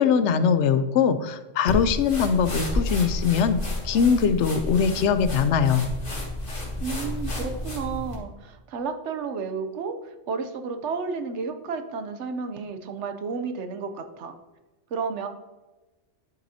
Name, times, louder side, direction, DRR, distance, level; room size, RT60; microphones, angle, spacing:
voice 1, 0.0-3.6 3.8-5.9, left 6 dB, 85° left, 11 dB, 0.9 m, -21 dB
sound 1, 1.7-8.2, left 1 dB, 50° left, 1.9 m, -31 dB
voice 2, 6.8-10.0 10.3-14.4 14.9-15.3, right 5 dB, 80° right, 8 dB, 1.1 m, -32 dB
10.5 x 6.0 x 2.8 m, 1.1 s
omnidirectional pair, 1.2 m